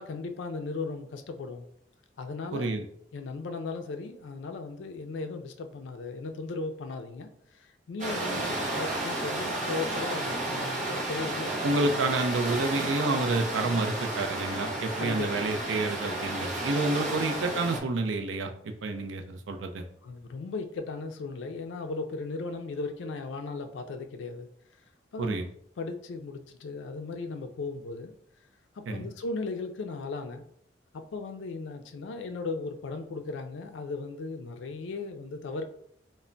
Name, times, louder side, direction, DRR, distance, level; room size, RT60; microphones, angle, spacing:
voice 1, 0.0-1.6 2.2-2.7 3.1-11.5 14.7-15.5 20.0-24.5 25.1-25.4 25.8-28.1 28.7-30.4 30.9-35.6, left 3 dB, 75° left, 7 dB, 0.4 m, -37 dB
voice 2, 2.5-2.9 11.6-19.8 25.2-25.4 28.9-29.1, right 2 dB, 90° right, 5 dB, 0.4 m, -29 dB
sound 1, 8.0-17.8, right 1 dB, 40° right, 0.6 m, -32 dB
2.1 x 2.1 x 3.7 m, 0.68 s
head